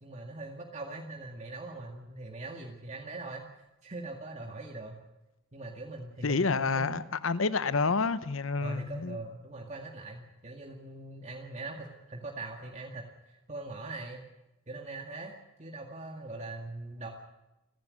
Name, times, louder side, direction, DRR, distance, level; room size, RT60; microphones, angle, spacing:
voice 1, 0.0-3.5 3.8-5.0 5.5-7.0 8.6-14.2 14.7-17.1, right 2 dB, 35° right, 2.1 m, -41 dB
voice 2, 6.2-9.2, left 4 dB, 80° left, 0.9 m, -29 dB
28.5 x 10.5 x 9.7 m
head